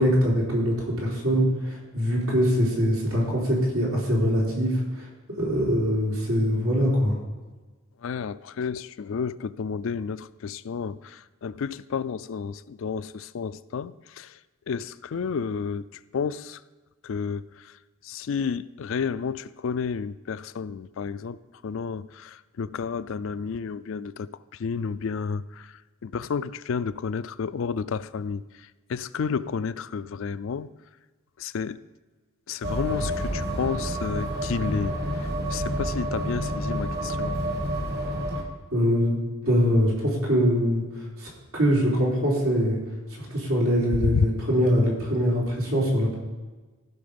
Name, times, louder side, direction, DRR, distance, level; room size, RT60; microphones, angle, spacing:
voice 1, 0.0-5.1 5.4-7.2 38.7-39.2 39.4-40.8 41.2-42.8 43.1-46.1, equal, 90° right, -4 dB, 4.0 m, -23 dB
voice 2, 8.0-14.3 14.7-15.8 16.1-16.6 17.0-17.4 18.1-21.4 21.6-24.3 24.6-25.4 26.0-28.4 28.9-30.7 31.4-31.8 32.5-34.9 35.5-37.3 44.0-44.2, left 6 dB, 65° left, 16 dB, 0.4 m, -30 dB
sound 1, 32.6-38.4, equal, 45° right, 1.4 m, -29 dB
15.0 x 5.9 x 5.2 m, 1.3 s
head